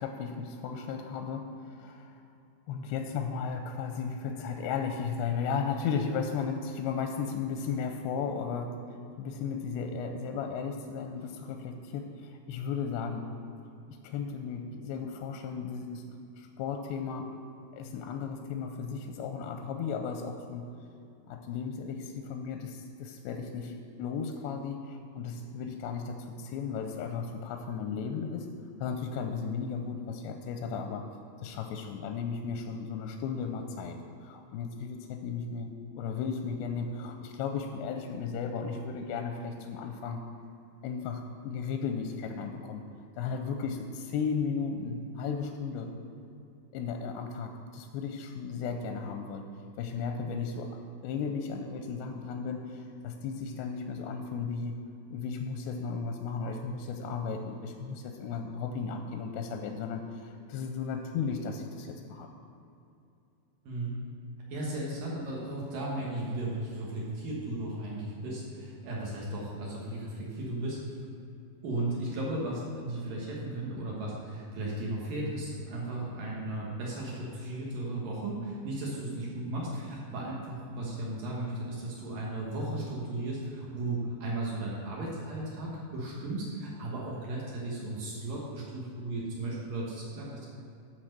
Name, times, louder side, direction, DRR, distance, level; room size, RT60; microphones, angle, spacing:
voice 1, 0.0-2.2 2.7-8.8 9.2-13.3 13.9-16.0 16.4-17.3 17.7-20.7 21.3-28.5 28.8-31.1 31.4-40.2 40.8-42.8 43.1-45.9 46.7-49.5 49.8-50.7 51.0-54.8 55.1-62.3, left 5 dB, 85° left, 5 dB, 2.5 m, -35 dB
voice 2, 63.7-64.0 64.5-70.8 71.6-90.5, right 2 dB, 60° right, -4 dB, 2.5 m, -35 dB
12.0 x 4.5 x 6.6 m, 2.6 s
omnidirectional pair, 5.2 m